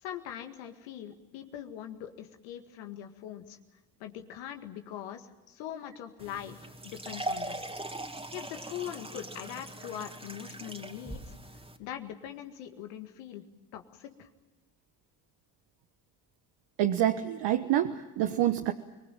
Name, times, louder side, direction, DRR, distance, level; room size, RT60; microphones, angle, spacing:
voice 1, 0.0-3.6 4.0-7.6 8.3-11.3 11.8-13.4 13.7-14.3, left 10 dB, 80° left, 6 dB, 2.0 m, -42 dB
sound 1, 6.2-11.8, right 1 dB, 15° right, 2.7 m, -40 dB
voice 2, 16.8-18.7, right 12 dB, 70° right, 6 dB, 1.3 m, -27 dB
25.5 x 20.0 x 9.2 m, 1.2 s
hypercardioid pair, 50°, 44 cm